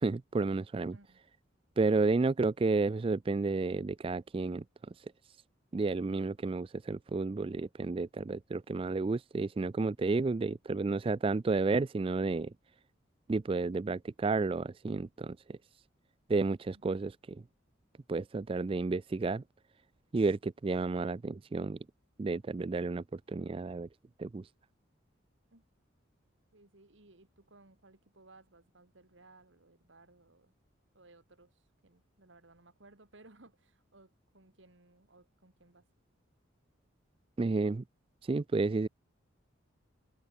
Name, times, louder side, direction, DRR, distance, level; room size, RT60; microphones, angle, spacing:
voice 1, 0.0-1.0 1.8-4.6 5.0-5.1 5.7-12.5 13.3-15.6 16.3-17.4 18.1-19.4 20.1-21.8 22.2-23.9 24.2-24.5 37.4-37.8 38.2-38.9, right 3 dB, 25° right, 0.3 m, -31 dB
voice 2, 26.5-30.5 30.9-35.8, right 2 dB, 70° right, 2.4 m, -60 dB
head